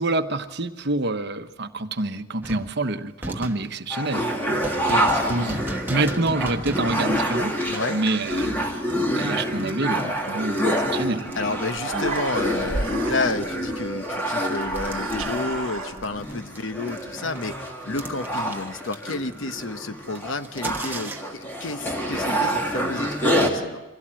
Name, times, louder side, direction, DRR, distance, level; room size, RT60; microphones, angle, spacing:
voice 1, 0.0-5.6 5.9-7.6 7.9-8.6 9.2-11.2, right 2 dB, 50° right, 7 dB, 1.1 m, -27 dB
sound 1, 2.4-11.4 11.7-15.7 16.0-21.5, right 1 dB, 10° right, 1.1 m, -38 dB
sound 2, 3.9-23.5, equal, 10° left, 2.6 m, -27 dB
voice 2, 7.6-8.0 11.4-21.1 21.6-23.8, left 3 dB, 65° left, 10 dB, 0.9 m, -30 dB
Human voice, 11.8-13.8 14.7-16.3, right 3 dB, 75° right, 1.2 m, -33 dB
24.5 x 16.5 x 7.6 m, 1.1 s
head